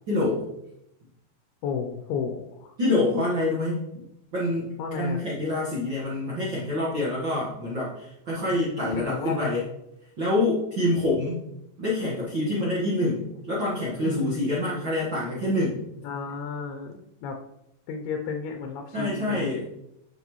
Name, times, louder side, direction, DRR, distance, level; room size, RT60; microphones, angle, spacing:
voice 1, 0.1-0.5 2.8-4.0 4.3-9.6 10.2-11.4 11.8-15.8 18.9-19.6, left 2 dB, 55° right, -7 dB, 1.3 m, -26 dB
voice 2, 1.6-2.7 4.8-5.2 8.5-9.5 14.0-14.8 16.0-17.4 17.9-19.6, left 5 dB, 85° left, 4 dB, 2.6 m, -33 dB
9.3 x 5.3 x 3.1 m, 0.81 s
omnidirectional pair, 4.4 m